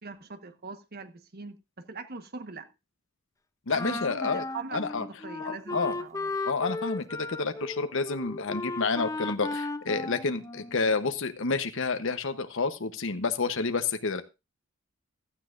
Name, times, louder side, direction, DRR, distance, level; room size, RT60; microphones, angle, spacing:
voice 1, 0.0-2.7 3.7-6.3, right 4 dB, 50° right, 1.3 m, -42 dB
voice 2, 3.7-4.4 4.7-5.0 5.4-5.9 6.4-14.2, left 4 dB, 65° left, 1.0 m, -29 dB
Wind instrument woodwind instrument, 3.7-11.0, left 3 dB, 15° left, 0.7 m, -35 dB
16.0 x 12.5 x 2.5 m
head